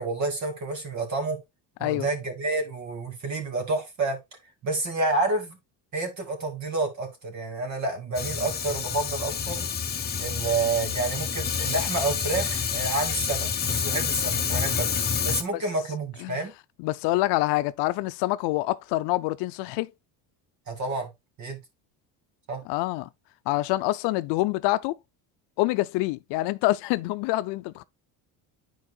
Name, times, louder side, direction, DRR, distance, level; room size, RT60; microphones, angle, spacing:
voice 1, 0.0-1.4 1.8-4.2 4.6-5.6 5.9-9.7 10.2-14.9 15.2-16.5 20.7-21.1 21.4-21.6 22.5-22.6, right 3 dB, 40° right, 2.5 m, -29 dB
Fire, 8.1-15.4, left 7 dB, 25° left, 0.9 m, -28 dB
voice 2, 16.8-19.9 22.7-23.1 23.5-25.0 25.6-27.8, left 18 dB, 70° left, 0.6 m, -26 dB
10.5 x 4.7 x 2.3 m
cardioid pair, 120°, 42 cm